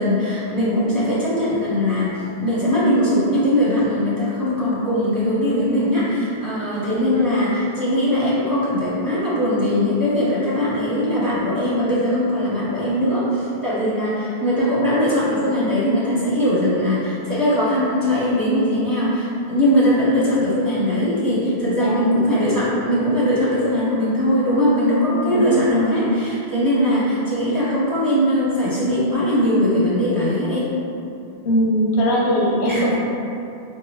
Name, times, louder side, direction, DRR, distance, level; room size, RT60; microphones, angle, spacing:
voice 1, 0.0-7.5 7.8-30.7 32.6-33.0, equal, 25° right, -11 dB, 0.7 m, -20 dB
voice 2, 7.1-7.6 20.1-20.2 21.8-22.1 25.2-26.0 31.4-33.0, equal, 85° left, -4 dB, 1.0 m, -21 dB
3.6 x 2.8 x 3.1 m, 2.7 s
omnidirectional pair, 1.1 m